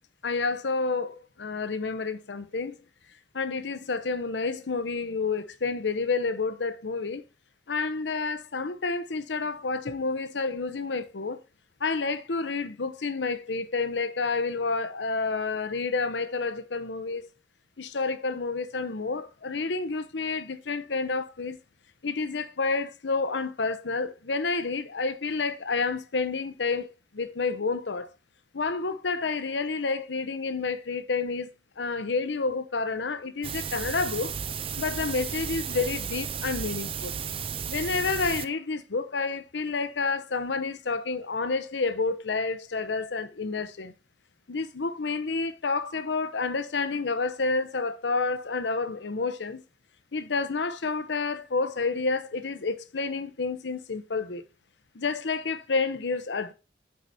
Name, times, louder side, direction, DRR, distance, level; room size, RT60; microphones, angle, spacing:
voice 1, 0.2-2.8 3.3-7.2 7.7-11.4 11.8-17.2 17.8-21.6 22.0-26.9 27.1-28.1 28.5-31.5 31.8-34.4 34.8-37.1 37.7-43.9 44.5-49.6 50.1-54.4 54.9-56.5, left 4 dB, 80° left, 0.8 m, -29 dB
sound 1, 33.4-38.4, right 7 dB, 30° right, 0.4 m, -34 dB
8.6 x 4.9 x 4.1 m
head